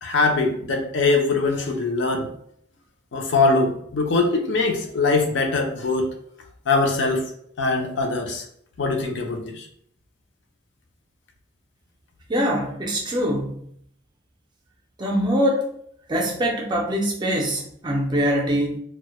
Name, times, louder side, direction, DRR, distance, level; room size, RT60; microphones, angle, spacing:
voice 1, 0.0-2.3 3.1-6.1 6.7-7.2 7.6-8.4 8.8-9.7, left 3 dB, 70° left, 2 dB, 0.4 m, -22 dB
voice 2, 12.3-13.6 15.0-15.7 16.1-18.8, equal, 25° right, 0 dB, 0.4 m, -23 dB
2.1 x 2.0 x 2.9 m, 0.66 s
head